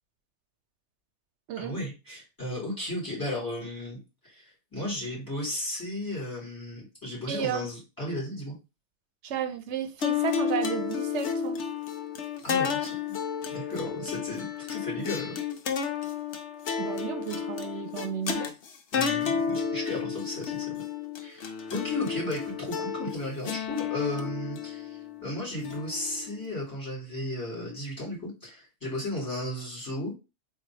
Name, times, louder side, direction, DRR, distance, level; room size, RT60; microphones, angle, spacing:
voice 1, 1.5-4.0 4.2-8.6 12.4-12.9 13.5-15.4 18.9-20.7 21.2-30.1, left 1 dB, 15° left, 2.7 m, -34 dB
voice 2, 7.3-7.7 9.2-11.6 16.8-18.5, right 9 dB, 85° right, 0.9 m, -33 dB
sound 1, 10.0-26.5, left 7 dB, 80° left, 1.0 m, -32 dB
3.9 x 2.7 x 4.7 m
omnidirectional pair, 1.2 m